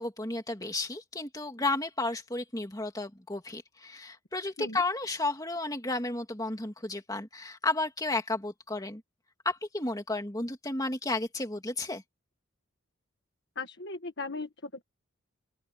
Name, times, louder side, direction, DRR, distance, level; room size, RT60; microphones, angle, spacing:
voice 1, 0.0-9.0 9.4-12.0, left 2 dB, 15° left, 2.4 m, -32 dB
voice 2, 13.5-14.8, left 3 dB, 50° left, 1.6 m, -38 dB
open air
head